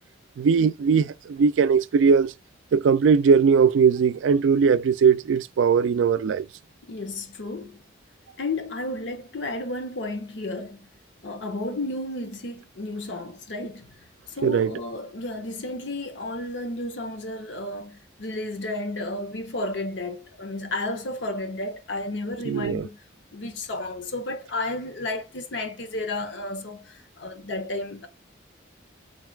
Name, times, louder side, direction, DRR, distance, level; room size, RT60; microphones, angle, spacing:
voice 1, 0.4-2.3 2.7-6.4 14.4-14.7 22.5-22.8, right 6 dB, 90° right, 0.3 m, -19 dB
voice 2, 6.8-7.8 8.4-10.8 11.2-13.9 14.3-23.0 23.3-28.1, left 2 dB, 75° left, 0.8 m, -32 dB
3.9 x 2.3 x 3.1 m
head